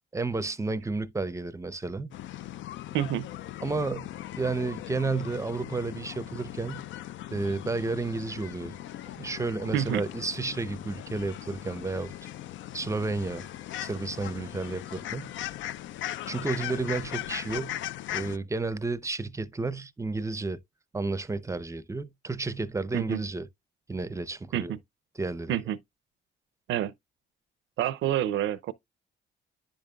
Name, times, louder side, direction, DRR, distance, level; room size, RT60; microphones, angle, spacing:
voice 1, 0.1-2.1 3.6-4.1 4.4-6.8 7.3-8.7 9.2-12.1 12.7-13.5 13.8-15.3 16.3-17.8 18.1-20.6 20.9-23.5 23.9-24.8 25.2-25.6, right 3 dB, 15° right, 0.5 m, -31 dB
sound 1, 2.1-18.4, left 13 dB, 70° left, 0.4 m, -39 dB
voice 2, 2.9-3.3 9.7-10.0 22.9-23.2 24.5-24.8 25.5-25.8 26.7-26.9 27.8-28.7, right 11 dB, 75° right, 0.5 m, -28 dB
10.0 x 5.2 x 2.2 m
cardioid pair, 90°, 20 cm